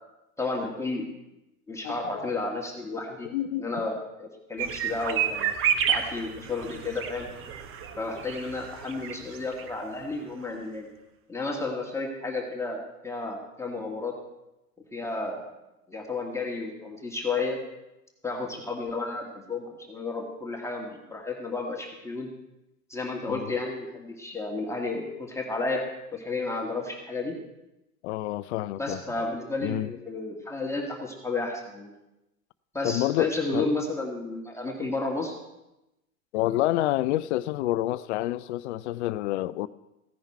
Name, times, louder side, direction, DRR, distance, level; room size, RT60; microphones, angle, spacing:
voice 1, 0.4-1.1 1.7-3.3 3.6-5.5 5.9-7.3 8.0-10.9 11.3-14.1 14.9-15.5 15.9-17.6 18.2-22.3 22.9-25.8 26.1-27.4 28.8-31.9 32.7-35.3, left 3 dB, 5° left, 1.9 m, -32 dB
voice 2, 1.8-2.3 3.2-3.7 23.3-23.5 28.0-29.0 29.6-29.9 32.8-33.7 36.3-39.7, left 15 dB, 50° left, 0.6 m, -28 dB
sound 1, 4.6-9.7 10.0-10.1 10.4-10.5, right 9 dB, 30° right, 1.0 m, -30 dB
15.5 x 10.0 x 4.5 m
figure-of-eight pair, 90°, 43 cm